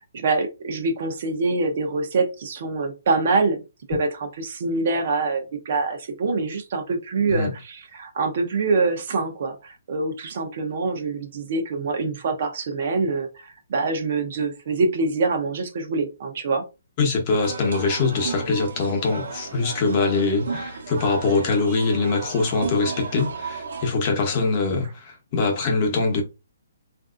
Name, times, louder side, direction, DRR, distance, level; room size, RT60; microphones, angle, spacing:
voice 1, 0.1-3.6 3.9-16.6, right 3 dB, 50° right, 0.7 m, -25 dB
voice 2, 17.0-26.2, left 3 dB, 30° left, 1.0 m, -23 dB
sound 1, 17.3-23.9, right 4 dB, 70° right, 1.0 m, -34 dB
3.4 x 2.6 x 2.5 m
hypercardioid pair, 160°, 0 cm